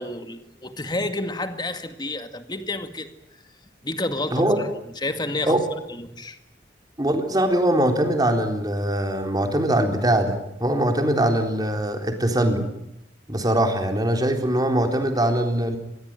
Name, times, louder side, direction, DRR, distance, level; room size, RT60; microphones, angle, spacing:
voice 1, 0.0-3.1 3.8-4.7 5.0-5.6 5.9-6.4, left 2 dB, 25° left, 2.1 m, -30 dB
voice 2, 4.3-4.6 5.5-5.6 7.0-12.7 13.3-15.8, right 1 dB, 20° right, 3.8 m, -22 dB
26.0 x 21.0 x 9.0 m
head